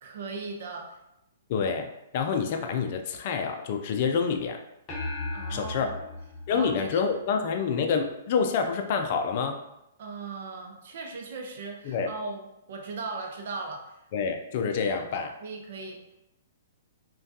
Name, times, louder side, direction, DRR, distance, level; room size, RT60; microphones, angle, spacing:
voice 1, 0.0-1.0 5.3-6.0 6.5-7.0 10.0-14.0 15.4-16.1, right 3 dB, 60° right, 3 dB, 0.6 m, -38 dB
voice 2, 1.5-4.6 5.5-5.9 6.5-9.6 11.8-12.1 14.1-15.3, left 6 dB, 50° left, 5 dB, 0.4 m, -27 dB
sound 1, 4.9-7.5, left 2 dB, 30° left, 0.7 m, -36 dB
3.3 x 2.2 x 2.7 m, 0.84 s
hypercardioid pair, 130°, 0 cm